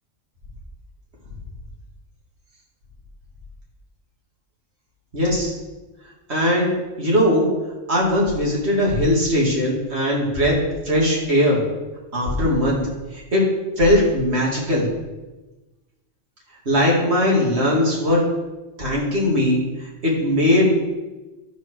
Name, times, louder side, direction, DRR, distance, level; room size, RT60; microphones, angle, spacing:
voice 1, 5.1-5.5 6.3-6.7 7.0-7.5 7.9-11.6 12.1-14.9 16.7-18.3 18.8-19.7 20.0-20.8, left 1 dB, 55° right, -3 dB, 2.7 m, -19 dB
12.0 x 4.6 x 6.2 m, 1.1 s
omnidirectional pair, 1.3 m